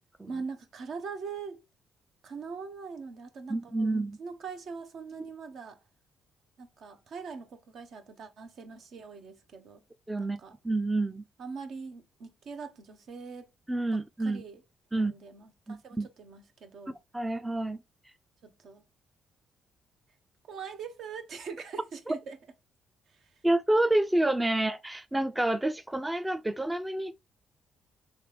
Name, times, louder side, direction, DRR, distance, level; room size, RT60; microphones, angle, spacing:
voice 1, 0.3-1.6 2.2-5.8 6.6-9.8 10.2-10.6 11.4-13.5 13.9-14.6 14.9-16.9 18.4-18.8 20.5-22.4 23.1-23.3, right 5 dB, 65° right, 0.7 m, -42 dB
voice 2, 3.5-4.2 10.1-10.4 10.6-11.2 13.7-14.4 14.9-15.1 15.7-16.1 17.1-17.8 22.1-22.2 23.4-27.1, right 1 dB, 10° right, 0.3 m, -28 dB
3.3 x 3.2 x 3.2 m
cardioid pair, 90°, 0 cm